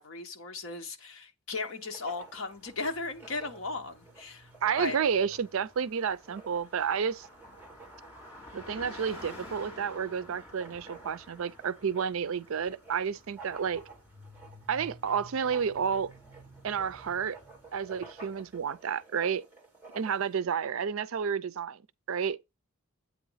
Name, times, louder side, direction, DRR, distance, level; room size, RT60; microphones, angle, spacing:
voice 1, 0.0-4.5 4.8-5.0, left 3 dB, 60° left, 1.0 m, -36 dB
Writing, 1.6-20.4, right 3 dB, 10° right, 1.6 m, -53 dB
Car passing by, 2.4-18.4, left 1 dB, 25° left, 2.7 m, -51 dB
voice 2, 4.6-7.3 8.5-13.8 14.7-16.1 16.6-17.4 17.7-19.4 20.0-21.8 22.1-22.4, right 7 dB, 65° right, 0.4 m, -30 dB
8.3 x 3.0 x 5.5 m
head